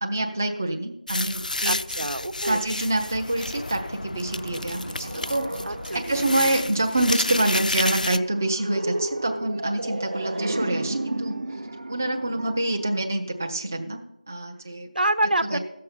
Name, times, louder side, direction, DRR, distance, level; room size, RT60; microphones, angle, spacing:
voice 1, 0.0-1.8 2.4-5.5 5.9-11.4 11.9-14.0 14.3-14.9 15.5-15.6, right 1 dB, 20° right, 3 dB, 0.5 m, -26 dB
sound 1, 1.1-8.2, left 2 dB, 65° left, 0.4 m, -31 dB
voice 2, 1.6-2.7 5.7-6.0 14.9-15.6, right 1 dB, 80° right, 11 dB, 1.2 m, -26 dB
sound 2, 3.9-13.6, right 1 dB, 50° right, 0.8 m, -34 dB
16.0 x 6.6 x 5.6 m, 0.86 s
figure-of-eight pair, 175°, 5 cm